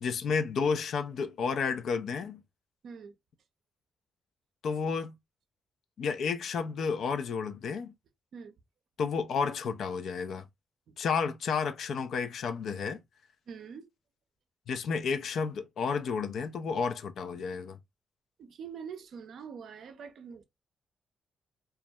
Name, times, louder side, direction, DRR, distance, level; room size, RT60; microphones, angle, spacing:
voice 1, 0.0-2.4 4.6-5.1 6.0-7.9 9.0-10.5 11.0-13.0 14.7-17.8, left 5 dB, 70° left, 0.3 m, -31 dB
voice 2, 2.8-3.1 8.3-8.6 10.9-11.0 12.8-12.9 13.5-13.9 18.4-20.4, right 6 dB, 70° right, 0.4 m, -44 dB
2.3 x 2.1 x 2.6 m
supercardioid pair, 55°, 0 cm